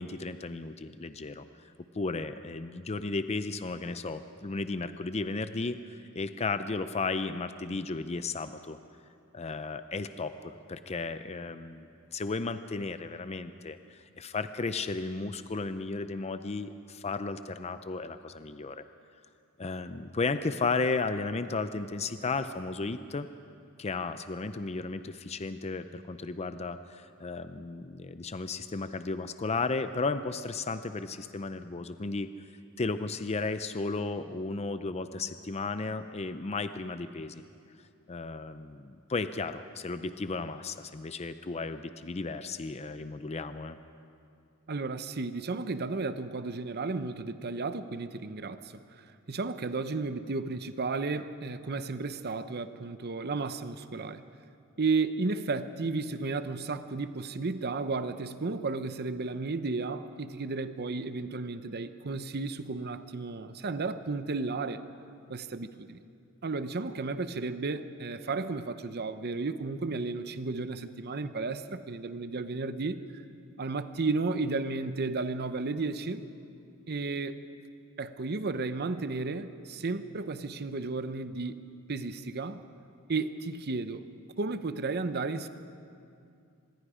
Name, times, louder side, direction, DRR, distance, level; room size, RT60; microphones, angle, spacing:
voice 1, 0.0-1.5 1.9-8.8 9.3-18.8 19.6-23.3 23.8-32.3 32.8-37.4 38.1-43.8, left 3 dB, 30° left, 11 dB, 0.5 m, -34 dB
voice 2, 44.7-54.2 54.8-64.8 65.3-66.0 66.4-73.2 73.6-76.2 76.9-77.4 78.0-81.6 81.9-82.7 83.1-84.0 84.4-85.5, right 3 dB, 50° right, 11 dB, 0.8 m, -33 dB
25.5 x 21.5 x 5.0 m, 2.4 s
head